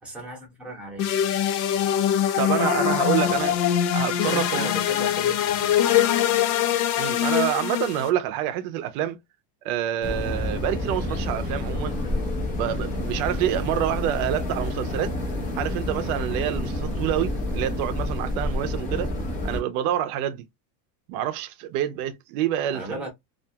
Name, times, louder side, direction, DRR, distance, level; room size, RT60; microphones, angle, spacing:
voice 1, 0.0-1.1 1.7-1.9 3.2-3.6 4.2-5.8 22.7-23.1, right 1 dB, ahead, 0.8 m, -36 dB
sound 1, 1.0-8.1, left 10 dB, 75° left, 0.7 m, -23 dB
voice 2, 2.4-3.6 3.9-4.7 7.0-9.2 9.6-12.0 12.6-15.1 15.6-19.1 19.4-20.5 21.1-23.0, right 11 dB, 60° right, 0.6 m, -27 dB
sound 2, 10.0-19.6, left 1 dB, 15° left, 0.4 m, -29 dB
2.5 x 2.3 x 2.7 m
cardioid pair, 175°, 50 cm